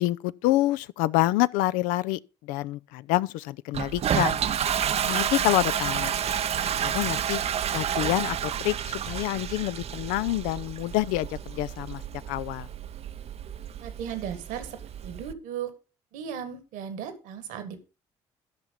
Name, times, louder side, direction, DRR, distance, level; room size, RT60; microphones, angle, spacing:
voice 1, 0.0-4.4 5.1-6.1 6.8-7.4 7.7-12.0 12.3-12.7, left 16 dB, 75° left, 0.4 m, -27 dB
Toilet flush, 3.7-15.3, right 9 dB, 50° right, 0.6 m, -30 dB
voice 2, 13.8-15.7 16.1-17.8, right 8 dB, 75° right, 1.6 m, -36 dB
13.0 x 5.9 x 5.3 m
hypercardioid pair, 50°, 14 cm